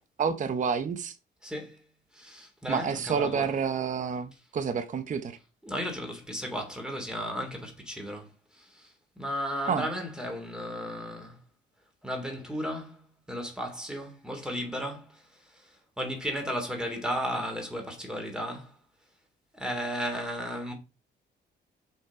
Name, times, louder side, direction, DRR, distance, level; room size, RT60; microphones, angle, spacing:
voice 1, 0.2-1.2 2.7-5.4 9.6-9.9, right 6 dB, 40° right, 0.8 m, -29 dB
voice 2, 1.4-1.8 2.1-3.5 5.6-11.4 12.0-18.7 19.5-20.7, equal, 5° right, 2.9 m, -35 dB
7.1 x 5.6 x 4.9 m
cardioid pair, 115°, 19 cm